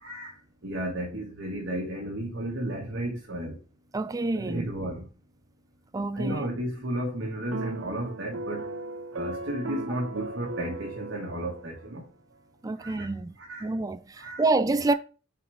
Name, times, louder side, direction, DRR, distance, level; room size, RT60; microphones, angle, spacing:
voice 1, 0.0-3.6 4.3-5.1 6.1-8.6 9.1-12.0 12.8-13.7 14.2-14.4 14.9-15.0, right 1 dB, 65° right, 1.7 m, -33 dB
voice 2, 3.9-4.7 5.9-6.4 12.6-13.4 13.6-14.0 14.4-14.9, right 3 dB, 20° right, 0.4 m, -27 dB
sound 1, 7.5-12.0, right 2 dB, 90° right, 0.7 m, -37 dB
5.6 x 4.1 x 4.9 m
head